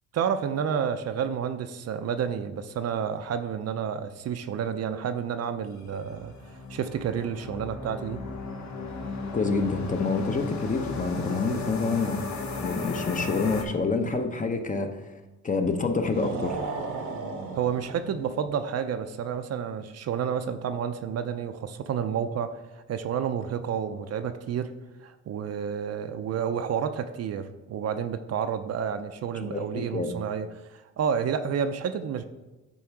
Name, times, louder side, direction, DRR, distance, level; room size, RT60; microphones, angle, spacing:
voice 1, 0.1-6.3 6.7-8.2 17.6-24.7 25.0-32.2, right 7 dB, 55° right, 9 dB, 0.5 m, -30 dB
sound 1, 5.8-13.6, left 3 dB, 70° left, 1.2 m, -35 dB
voice 2, 9.3-12.2 12.6-15.1 15.4-16.6 29.4-30.1, left 4 dB, 25° left, 6 dB, 0.7 m, -27 dB
sound 2, 16.0-18.4, right 4 dB, 85° right, 1.2 m, -35 dB
8.5 x 3.5 x 4.7 m, 1.1 s
cardioid pair, 90°, 30 cm